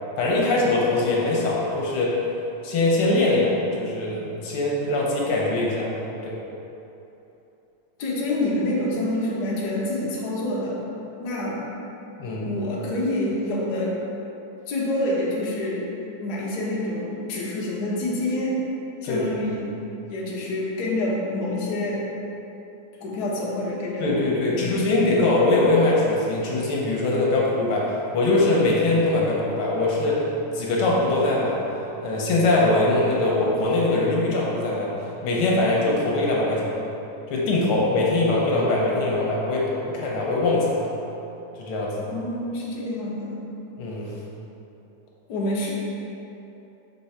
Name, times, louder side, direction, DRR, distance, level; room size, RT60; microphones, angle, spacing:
voice 1, 0.2-2.2 2.6-3.5 3.8-5.9 6.2-6.4 12.2-12.5 19.0-19.2 24.0-30.3 30.5-34.9 35.2-36.8 37.3-40.9 41.6-41.9 43.8-44.1, left 2 dB, 80° left, -4 dB, 1.8 m, -22 dB
voice 2, 8.0-10.8 11.2-11.6 12.4-14.0 14.7-15.9 16.2-18.6 19.0-19.6 20.1-22.1 23.0-24.7 42.1-43.4 45.3-45.7, left 1 dB, 55° left, -5 dB, 1.4 m, -27 dB
5.6 x 4.6 x 4.2 m, 2.9 s
omnidirectional pair, 2.4 m